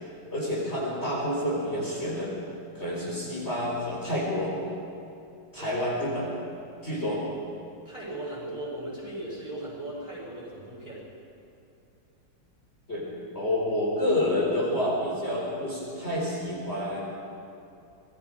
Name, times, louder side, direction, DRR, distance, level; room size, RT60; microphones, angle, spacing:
voice 1, 0.3-2.3 2.7-4.5 5.5-6.3 6.8-7.2 12.9-13.1 13.3-17.0, left 1 dB, 30° left, -5 dB, 4.5 m, -28 dB
voice 2, 6.9-7.2 7.8-11.0, right 1 dB, 25° right, -6 dB, 7.1 m, -38 dB
25.5 x 20.0 x 5.0 m, 2.7 s
omnidirectional pair, 2.2 m